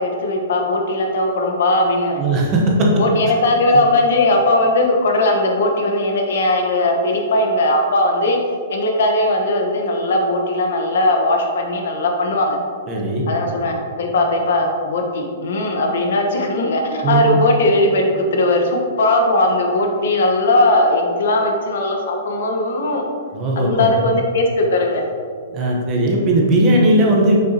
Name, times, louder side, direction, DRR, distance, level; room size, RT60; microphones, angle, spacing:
voice 1, 0.0-2.2 2.9-8.4 8.7-12.6 13.3-23.1 23.6-25.0, left 1 dB, 70° left, 2 dB, 1.1 m, -18 dB
voice 2, 2.2-2.9 3.7-3.8 12.9-13.2 17.0-17.4 23.3-23.9 25.5-27.4, right 1 dB, 25° right, -1 dB, 0.9 m, -17 dB
6.7 x 6.1 x 2.9 m, 2.1 s
hypercardioid pair, 170°, 0 cm